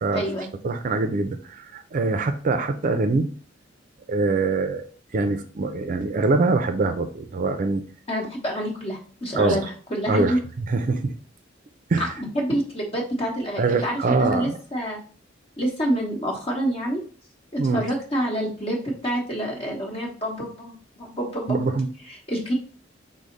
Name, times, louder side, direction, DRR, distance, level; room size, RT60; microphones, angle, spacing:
voice 1, 0.1-0.5 8.1-10.4 12.0-15.0 15.6-17.0 17.5-21.7 22.1-22.5, equal, 30° left, -1 dB, 1.2 m, -27 dB
voice 2, 0.6-3.3 4.1-4.8 5.1-7.8 9.4-9.7 10.1-11.1 11.9-12.1 13.6-14.6 17.6-17.8 21.5-21.9, right 3 dB, 45° right, 7 dB, 0.4 m, -23 dB
4.9 x 2.1 x 3.9 m, 0.40 s
head